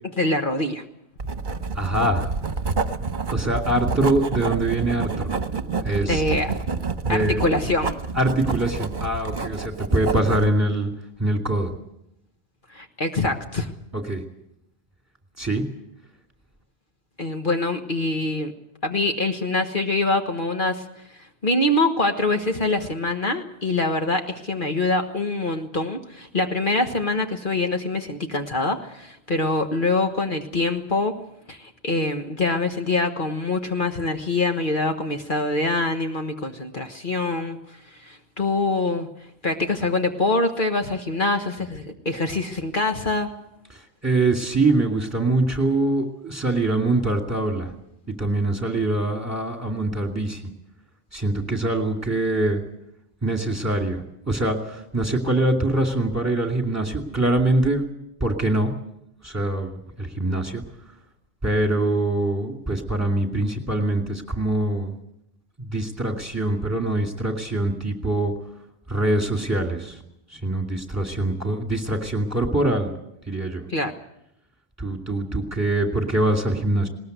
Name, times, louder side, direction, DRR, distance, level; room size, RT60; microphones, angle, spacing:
voice 1, 0.2-0.8 6.0-6.5 7.1-8.0 12.7-13.7 17.2-18.5 18.8-20.8 21.1-31.1 31.5-39.1 39.4-43.3 73.7-73.9, left 2 dB, 50° left, 5 dB, 1.5 m, -24 dB
Writing, 1.2-10.5, right 4 dB, 45° right, 1.2 m, -28 dB
voice 2, 1.7-2.3 3.3-5.3 5.8-6.2 7.1-7.4 8.2-10.9 11.2-11.7 13.9-14.2 15.4-15.6 44.0-47.7 48.2-50.4 51.1-52.6 53.2-54.0 54.3-57.8 58.2-58.7 59.2-60.6 61.4-64.9 65.6-68.3 68.9-70.0 70.3-72.9 73.3-73.6 74.8-76.9, right 2 dB, 15° right, 3 dB, 2.5 m, -23 dB
20.0 x 19.5 x 8.0 m, 0.79 s
omnidirectional pair, 1.1 m